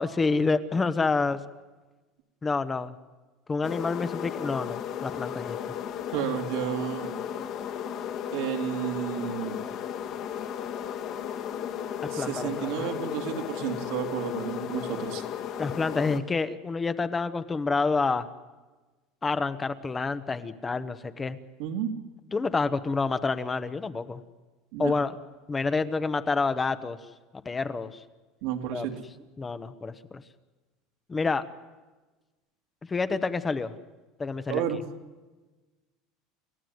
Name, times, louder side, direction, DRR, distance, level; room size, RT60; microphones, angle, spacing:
voice 1, 0.0-1.4 2.4-2.9 3.5-5.6 12.2-12.9 15.6-18.3 19.2-21.4 22.3-24.2 24.8-25.1 25.5-27.0 27.4-28.0 28.7-28.9 29.4-30.2 31.1-31.5 32.9-33.8 34.2-34.6, left 4 dB, 20° left, 11 dB, 1.1 m, -28 dB
sound 1, 3.6-16.2, left 9 dB, 50° left, 2.2 m, -35 dB
voice 2, 6.1-7.1 8.3-9.6 12.1-15.2 21.6-21.9 24.7-24.9 28.4-28.9 34.5-34.8, right 9 dB, 75° right, 3 dB, 3.0 m, -31 dB
30.0 x 14.5 x 9.5 m, 1.2 s
supercardioid pair, 130°, 0 cm